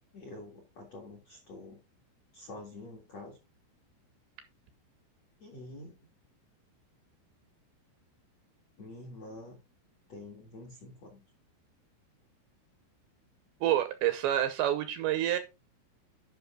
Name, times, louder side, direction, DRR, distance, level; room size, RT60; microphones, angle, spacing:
voice 1, 0.1-1.8 2.3-3.4 5.4-6.0 8.8-9.6 10.1-11.2, left 2 dB, 55° left, 2.0 m, -47 dB
voice 2, 13.6-15.4, right 12 dB, 75° right, 2.7 m, -28 dB
10.5 x 5.7 x 3.8 m
omnidirectional pair, 5.6 m